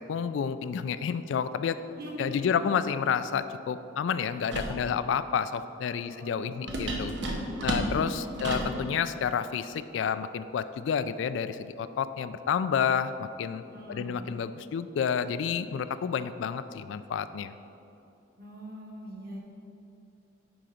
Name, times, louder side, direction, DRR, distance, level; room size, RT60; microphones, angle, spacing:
voice 1, 0.1-1.8 2.2-7.1 7.4-13.6 13.9-17.5, left 7 dB, 80° left, 13 dB, 0.3 m, -30 dB
voice 2, 1.9-2.8 6.0-8.6 13.6-14.2 18.4-19.4, right 1 dB, 50° right, -2 dB, 1.4 m, -43 dB
sound 1, 4.5-4.8 6.7-8.8, right 1 dB, 70° right, 0.9 m, -31 dB
10.0 x 3.9 x 4.9 m, 2.8 s
head